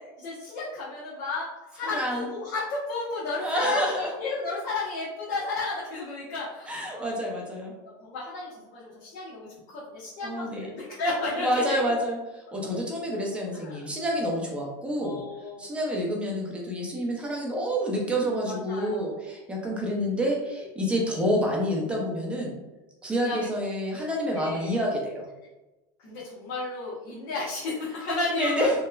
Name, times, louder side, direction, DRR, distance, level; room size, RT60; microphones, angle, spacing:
voice 1, 0.2-1.5 1.7-7.1 8.0-11.9 13.5-13.8 15.0-15.7 18.5-19.2 23.1-23.5 24.3-24.8 26.0-28.7, left 3 dB, 65° left, -8 dB, 0.9 m, -33 dB
voice 2, 1.9-2.3 3.4-4.1 6.7-7.7 10.2-10.7 11.4-12.2 12.5-15.2 15.6-22.5 23.0-25.3 28.3-28.7, equal, 10° right, -2 dB, 0.5 m, -28 dB
3.0 x 2.1 x 2.2 m, 1.1 s
supercardioid pair, 135°, 11 cm